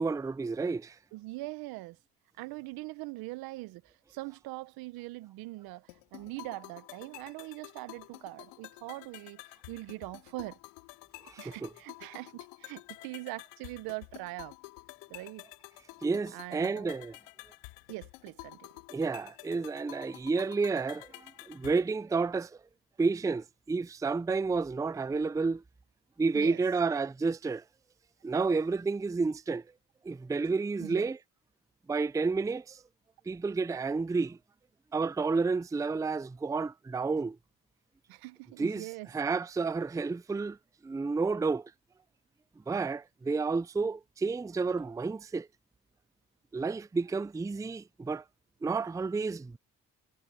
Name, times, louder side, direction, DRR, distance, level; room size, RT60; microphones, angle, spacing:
voice 1, 0.0-1.0 11.2-11.7 16.0-17.2 18.9-22.6 23.0-25.6 26.2-27.6 28.2-29.6 30.0-31.2 31.9-32.8 33.3-34.4 34.9-37.4 38.6-38.9 39.1-40.6 40.8-41.7 42.7-45.5 46.5-48.2 48.6-49.6, right 4 dB, 10° right, 0.4 m, -30 dB
voice 2, 1.1-2.0 2.4-10.6 11.4-14.5 15.1-15.4 16.3-16.9 17.9-18.7 26.3-26.6 30.8-31.1 38.1-39.1, right 20 dB, 80° right, 1.1 m, -42 dB
sound 1, 5.9-21.9, left 27 dB, 90° left, 3.9 m, -50 dB
hypercardioid pair, 50°, 36 cm